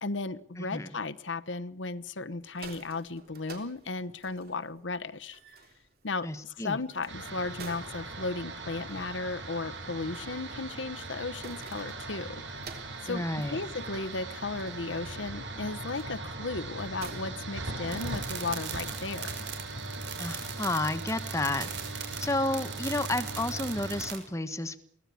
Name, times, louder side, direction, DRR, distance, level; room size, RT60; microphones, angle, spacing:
voice 1, 0.0-5.4 6.0-12.4 13.0-13.2 13.5-19.4, left 3 dB, 90° left, 11 dB, 1.1 m, -35 dB
voice 2, 0.6-0.9 6.2-6.8 13.1-13.6 20.2-21.7 22.2-24.8, left 2 dB, 15° left, 9 dB, 1.4 m, -31 dB
sound 1, 2.3-18.3, right 4 dB, 55° right, 3.5 m, -53 dB
sound 2, 7.1-24.1, right 2 dB, 90° right, 6.4 m, -39 dB
sound 3, 17.9-24.2, right 8 dB, 70° right, 5.7 m, -40 dB
24.0 x 17.0 x 8.5 m, 0.68 s
head